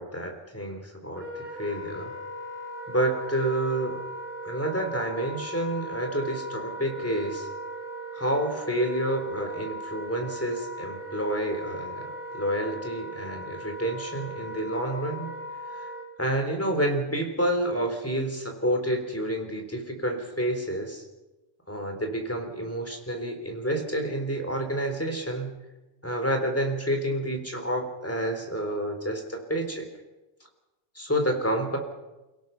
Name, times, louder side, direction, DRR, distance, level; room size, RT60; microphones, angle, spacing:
voice 1, 0.0-2.1 2.9-4.0 4.4-7.5 8.1-12.1 12.3-15.3 16.2-21.0 21.7-25.6 26.0-29.9 31.0-31.8, right 1 dB, 10° left, 3 dB, 3.8 m, -29 dB
Wind instrument woodwind instrument, 1.1-16.1, right 1 dB, 40° right, 4.8 m, -38 dB
29.5 x 17.0 x 5.9 m, 1.1 s
omnidirectional pair, 1.2 m